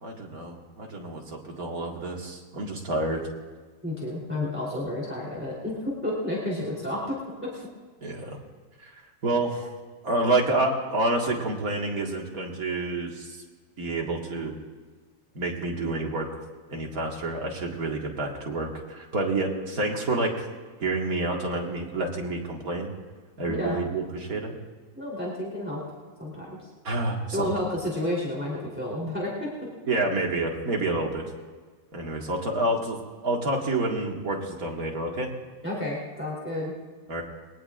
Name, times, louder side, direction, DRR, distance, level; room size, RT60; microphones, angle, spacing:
voice 1, 0.0-3.2 8.0-8.4 8.8-8.9 9.2-9.7 10.0-13.4 13.8-14.5 15.3-16.4 16.7-20.5 20.8-22.9 23.4-24.5 26.8-27.5 29.9-31.2 31.9-33.0 33.2-35.3 37.1-37.2, right 2 dB, 60° right, -1 dB, 2.3 m, -28 dB
voice 2, 3.8-7.2 7.4-7.5 23.4-23.8 25.0-25.8 26.2-26.7 27.3-29.3 35.6-36.7, left 1 dB, 5° right, -6 dB, 3.4 m, -31 dB
22.5 x 18.0 x 2.5 m, 1.4 s
omnidirectional pair, 1.7 m